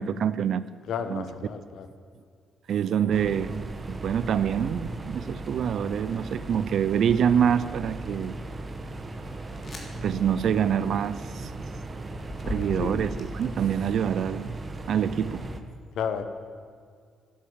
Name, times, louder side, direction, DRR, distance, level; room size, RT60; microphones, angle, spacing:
voice 1, 0.0-0.7 1.1-1.2 2.7-8.4 10.0-11.7 12.5-14.6 14.9-15.5, right 8 dB, 65° right, 16 dB, 0.6 m, -26 dB
voice 2, 0.9-1.9 12.8-13.1 15.9-16.2, left 7 dB, 75° left, 9 dB, 1.3 m, -32 dB
sound 1, 3.1-15.6, right 2 dB, 30° right, 1.3 m, -37 dB
sound 2, 5.1-5.4 6.0-6.8 7.5-13.9 14.5-15.2, left 1 dB, 40° left, 3.2 m, -42 dB
13.0 x 10.5 x 8.8 m, 2.2 s
cardioid pair, 90°, 0 cm